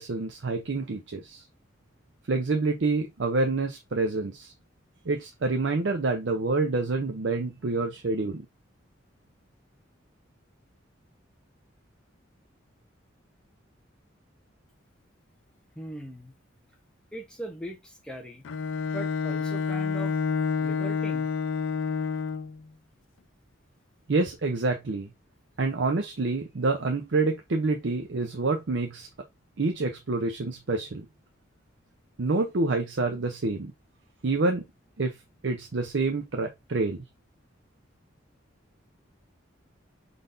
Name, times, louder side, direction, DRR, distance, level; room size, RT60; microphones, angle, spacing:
voice 1, 0.0-1.4 2.3-4.5 5.0-8.5 24.1-25.1 25.6-29.1 29.6-31.1 32.2-33.7 34.2-34.6 35.0-35.2 35.4-37.0, right 3 dB, 65° right, 0.6 m, -27 dB
voice 2, 15.7-16.3 17.1-18.4 18.9-20.2 20.6-21.3, right 1 dB, 5° left, 0.9 m, -39 dB
Bowed string instrument, 18.4-22.6, left 5 dB, 85° left, 0.4 m, -28 dB
5.2 x 3.9 x 2.6 m
head